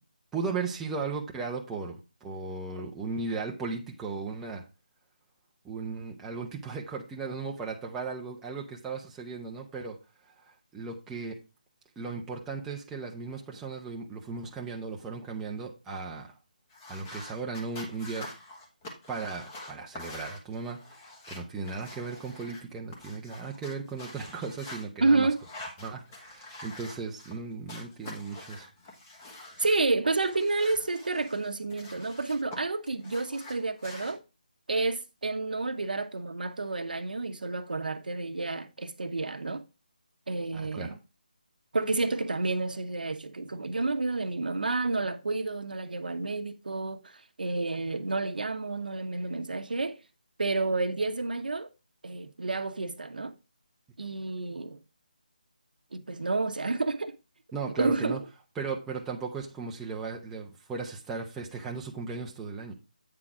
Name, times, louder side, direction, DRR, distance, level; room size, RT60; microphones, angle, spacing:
voice 1, 0.3-4.6 5.6-10.0 10.7-11.3 12.0-16.3 16.9-18.3 19.1-21.0 21.3-25.3 25.8-28.7 40.5-41.0 57.5-58.2 58.6-62.7, right 4 dB, 5° right, 0.6 m, -36 dB
sound 1, 16.7-22.6 22.9-24.8 25.3-27.4 27.7-29.8 30.2-32.6 32.9-34.1, left 2 dB, 20° left, 1.4 m, -46 dB
voice 2, 25.0-25.4 29.6-34.2 34.7-39.6 40.3-41.0 41.7-50.0 50.4-51.7 52.0-53.3 54.0-54.8 55.9-57.1 57.8-58.2, right 3 dB, 75° right, 0.9 m, -30 dB
8.6 x 3.8 x 4.8 m
figure-of-eight pair, 165°, 5 cm